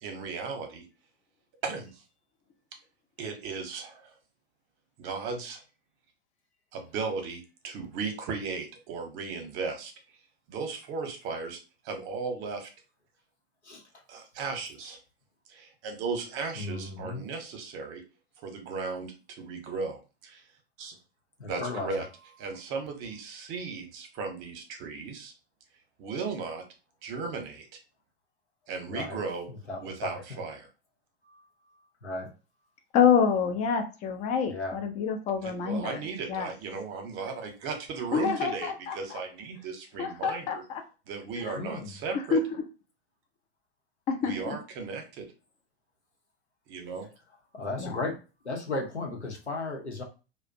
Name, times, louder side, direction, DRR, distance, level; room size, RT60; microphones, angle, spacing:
voice 1, 0.0-0.8 1.6-1.9 3.2-4.1 5.0-5.6 6.7-9.9 10.5-11.6 11.8-12.7 14.1-15.0 15.5-18.0 18.4-20.4 20.8-20.9 21.4-22.1 22.4-25.3 26.0-26.6 27.0-27.7 28.7-29.4 29.8-30.7 35.4-40.6 41.1-42.4 44.2-45.3 46.7-47.1, right 4 dB, 35° right, 5 dB, 0.8 m, -36 dB
voice 2, 16.6-17.2 21.4-22.0 28.9-29.2 29.5-30.4 31.2-31.4 32.0-32.3 34.5-34.8 41.5-41.9 47.5-48.2 48.4-50.0, left 3 dB, 90° left, 0 dB, 0.7 m, -35 dB
voice 3, 32.9-36.0 36.3-36.5 38.1-39.2 40.0-40.8 41.4-41.6 42.3-42.4 44.1-44.6 47.8-48.0, left 6 dB, 20° left, 6 dB, 0.4 m, -27 dB
2.5 x 2.1 x 2.5 m, 0.32 s
figure-of-eight pair, 95°, 33 cm